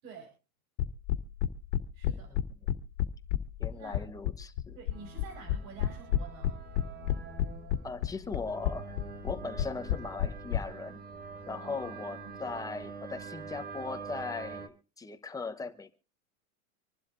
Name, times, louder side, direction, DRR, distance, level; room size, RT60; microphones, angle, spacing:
sound 1, 0.8-10.6, left 12 dB, 65° left, 1.8 m, -29 dB
voice 1, 1.9-2.3 3.7-4.0 4.7-6.5 11.5-12.5, right 5 dB, 65° right, 4.9 m, -49 dB
voice 2, 3.6-4.8 7.8-9.0 9.2-11.0 11.5-15.9, left 4 dB, 10° left, 1.0 m, -39 dB
sound 2, 4.9-14.7, right 5 dB, 20° right, 1.3 m, -45 dB
26.0 x 12.0 x 2.6 m
supercardioid pair, 150°, 42 cm